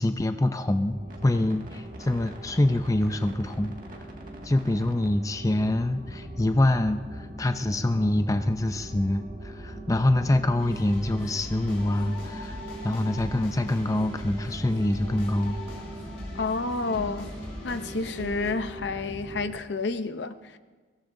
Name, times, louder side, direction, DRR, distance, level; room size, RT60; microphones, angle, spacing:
voice 1, 0.0-3.7 4.4-12.6 12.8-15.6, left 1 dB, 20° left, 0.4 m, -25 dB
sound 1, 0.8-19.6, right 1 dB, 45° right, 1.9 m, -40 dB
sound 2, 10.6-18.5, left 1 dB, 90° left, 4.1 m, -42 dB
voice 2, 16.3-17.3 17.6-20.6, left 3 dB, 70° left, 0.7 m, -30 dB
23.0 x 17.0 x 2.7 m
head